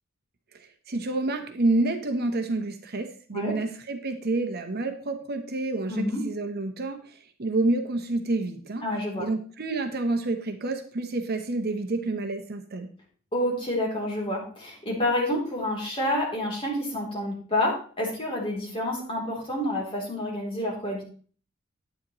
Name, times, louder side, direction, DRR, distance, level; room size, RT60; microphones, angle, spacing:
voice 1, 0.5-8.8 9.2-12.9, right 2 dB, 50° right, 6 dB, 0.9 m, -28 dB
voice 2, 5.9-6.2 8.8-9.3 13.3-21.0, left 1 dB, 25° left, -3 dB, 3.1 m, -28 dB
10.0 x 8.6 x 3.0 m, 0.42 s
head